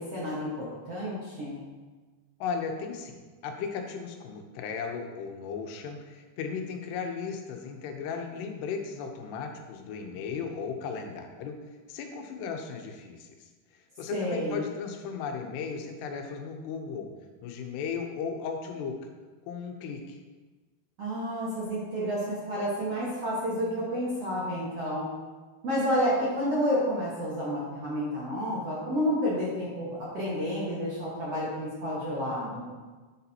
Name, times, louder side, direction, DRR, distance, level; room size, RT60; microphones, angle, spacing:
voice 1, 0.0-1.6 14.1-14.6 21.0-25.1 25.6-32.7, equal, 60° right, -7 dB, 1.7 m, -30 dB
voice 2, 2.4-11.5 11.9-13.5 14.0-17.1 17.4-18.9 19.5-20.2, left 6 dB, 85° left, 4 dB, 3.0 m, -36 dB
9.8 x 8.1 x 2.9 m, 1.3 s
omnidirectional pair, 4.7 m